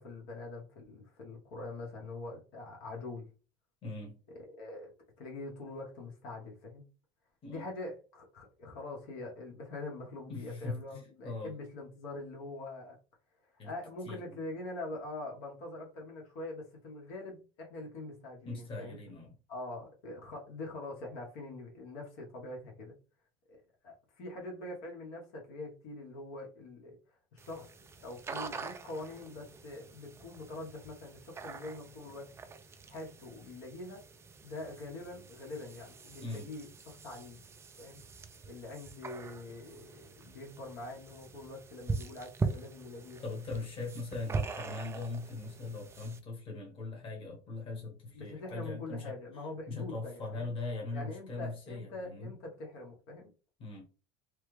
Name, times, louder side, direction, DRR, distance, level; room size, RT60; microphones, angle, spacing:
voice 1, 0.0-3.3 4.3-4.9 5.2-6.8 7.5-13.0 13.4-19.0 19.5-22.9 23.5-27.0 27.3-27.7 28.0-32.3 32.9-34.0 34.4-37.4 37.8-38.0 38.4-43.3 48.1-50.5 50.9-53.3, left 2 dB, 75° left, 1.3 m, -44 dB
voice 2, 3.8-4.2 7.4-7.6 10.3-11.5 13.6-13.7 14.0-14.4 18.4-19.3 36.2-36.5 43.2-49.2 49.7-52.3 53.6-53.8, left 3 dB, 35° left, 1.3 m, -40 dB
sound 1, 27.4-46.2, right 4 dB, 15° right, 0.3 m, -43 dB
3.3 x 2.2 x 3.2 m
cardioid pair, 135°, 16 cm